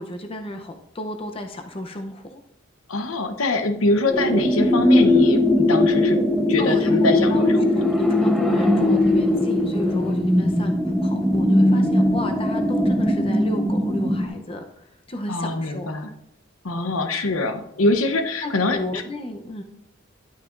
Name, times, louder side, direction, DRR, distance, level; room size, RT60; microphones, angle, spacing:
voice 1, 0.0-2.4 6.6-15.9 18.4-19.6, left 1 dB, 25° left, 5 dB, 0.7 m, -33 dB
voice 2, 2.9-6.2 6.5-7.7 15.3-16.1 16.6-19.0, left 2 dB, 90° left, 6 dB, 0.9 m, -24 dB
sound 1, 4.1-14.3, left 1 dB, ahead, 0.8 m, -19 dB
11.5 x 8.8 x 2.5 m, 0.81 s
head